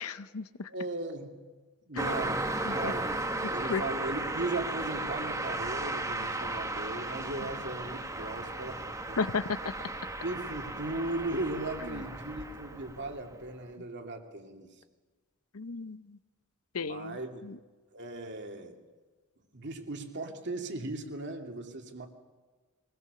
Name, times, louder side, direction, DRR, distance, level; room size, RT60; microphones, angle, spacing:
voice 1, 0.0-0.7 2.0-2.2 2.6-2.9 3.4-3.8 9.2-9.4 11.8-12.0 15.5-16.2 16.7-17.6, left 4 dB, 70° left, 14 dB, 0.7 m, -35 dB
voice 2, 0.7-1.3 1.9-2.4 2.7-9.2 10.2-14.7 16.8-17.5 17.9-18.8 19.5-22.1, right 2 dB, 50° right, 3 dB, 2.5 m, -37 dB
Car passing by, 2.0-13.4, right 2 dB, 15° right, 1.6 m, -35 dB
23.0 x 20.0 x 6.8 m, 1.4 s
head